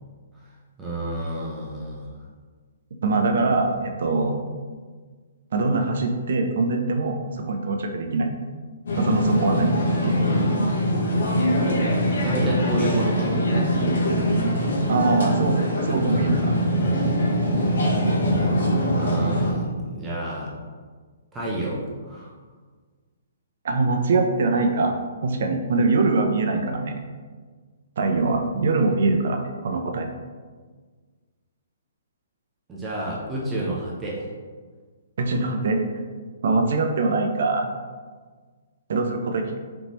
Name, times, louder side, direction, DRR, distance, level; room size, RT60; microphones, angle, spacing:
voice 1, 0.8-2.2 12.0-13.6 18.9-20.5 21.3-22.3 32.7-34.3, right 1 dB, 10° right, -5 dB, 0.6 m, -30 dB
voice 2, 3.0-4.4 5.5-7.2 7.5-8.3 9.0-10.2 14.9-16.5 23.6-26.9 28.0-30.1 35.2-35.8 36.4-37.7 38.9-39.6, right 3 dB, 60° right, 4 dB, 0.6 m, -23 dB
sound 1, 8.9-19.5, equal, 70° left, 1.1 m, -22 dB
4.0 x 3.6 x 3.0 m, 1.5 s
hypercardioid pair, 165°, 0 cm